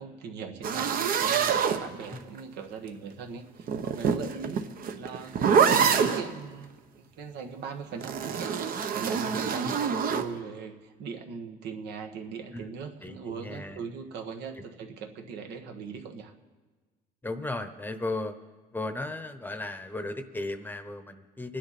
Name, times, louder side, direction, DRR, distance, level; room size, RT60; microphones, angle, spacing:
voice 1, 0.0-4.6 4.9-6.7 7.2-16.3, right 5 dB, 80° right, 4 dB, 1.5 m, -39 dB
sound 1, 0.6-2.4 3.6-6.3 8.0-10.3, right 7 dB, 55° right, 1.0 m, -26 dB
voice 2, 5.8-6.2 12.5-12.7 13.0-13.8 17.2-18.3 18.7-21.6, left 2 dB, 10° left, 10 dB, 0.9 m, -36 dB
25.5 x 10.5 x 4.3 m, 1.3 s
cardioid pair, 110°, 17 cm